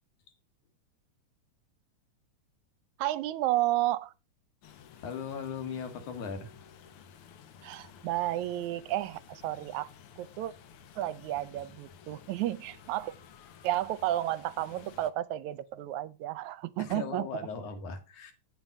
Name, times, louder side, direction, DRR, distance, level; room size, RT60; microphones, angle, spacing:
voice 1, 3.0-4.1 7.6-9.9 10.2-10.5 11.0-13.1 13.6-17.3, right 14 dB, 80° right, 1.9 m, -32 dB
sound 1, 4.6-15.1, left 7 dB, 65° left, 1.5 m, -54 dB
voice 2, 5.0-6.5 16.8-18.3, left 6 dB, 80° left, 3.3 m, -38 dB
8.8 x 7.3 x 5.3 m
omnidirectional pair, 3.5 m